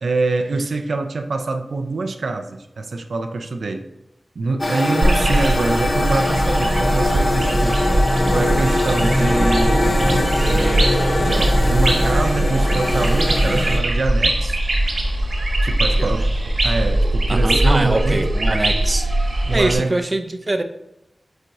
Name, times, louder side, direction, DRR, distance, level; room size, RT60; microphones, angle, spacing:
voice 1, 0.0-3.9 4.4-7.8 8.3-14.6 15.6-16.3 16.6-18.2 19.5-20.0, right 3 dB, 85° right, 6 dB, 0.6 m, -24 dB
sound 1, 4.6-13.8, left 1 dB, 35° left, 0.8 m, -21 dB
sound 2, 5.0-19.7, right 1 dB, 60° right, 1.2 m, -20 dB
voice 2, 8.3-8.6 15.9-16.1 17.3-19.1 19.5-20.6, right 2 dB, 30° right, 6 dB, 0.6 m, -23 dB
8.2 x 4.4 x 2.7 m, 0.86 s
wide cardioid pair, 100°, 0 cm